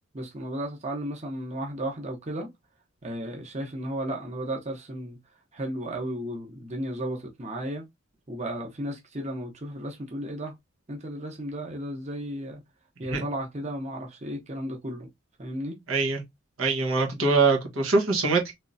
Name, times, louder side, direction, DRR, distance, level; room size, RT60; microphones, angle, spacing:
voice 1, 0.1-2.5 3.0-5.2 5.5-7.8 8.3-10.6 10.9-12.6 13.0-15.1 15.4-15.8, right 1 dB, 35° right, 0.8 m, -34 dB
voice 2, 15.9-16.2 16.6-18.5, right 3 dB, 85° right, 1.2 m, -23 dB
3.5 x 3.2 x 2.6 m
head